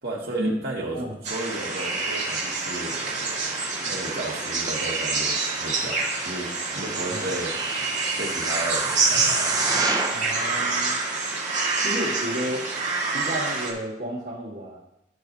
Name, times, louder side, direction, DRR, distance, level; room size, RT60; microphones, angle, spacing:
voice 1, 0.0-7.5 8.2-9.6, right 2 dB, 65° right, -2 dB, 1.9 m, -34 dB
sound 1, 1.2-13.7, right 3 dB, 45° right, 1.8 m, -27 dB
sound 2, 6.7-10.3 10.9-11.0, right 3 dB, 20° right, 0.7 m, -28 dB
voice 2, 10.1-11.0 11.8-12.7 13.1-14.8, right 1 dB, 80° right, -8 dB, 2.0 m, -31 dB
12.5 x 6.0 x 2.8 m, 0.84 s
head